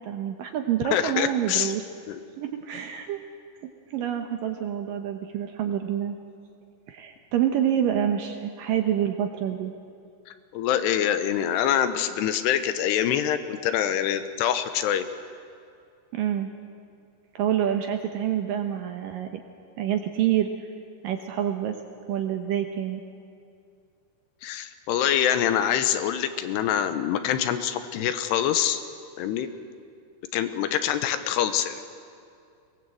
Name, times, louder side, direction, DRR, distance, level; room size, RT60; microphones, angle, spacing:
voice 1, 0.0-1.9 2.4-3.2 3.9-6.2 6.9-9.7 16.1-16.5 17.4-19.4 19.8-20.5 21.0-21.8 22.1-23.0, right 10 dB, 70° right, 5 dB, 2.2 m, -27 dB
voice 2, 0.9-1.7 2.1-2.2 10.3-15.1 24.4-28.8 29.2-29.5 30.3-31.8, left 10 dB, 80° left, 10 dB, 2.9 m, -25 dB
23.0 x 19.5 x 7.7 m, 2.4 s
omnidirectional pair, 4.9 m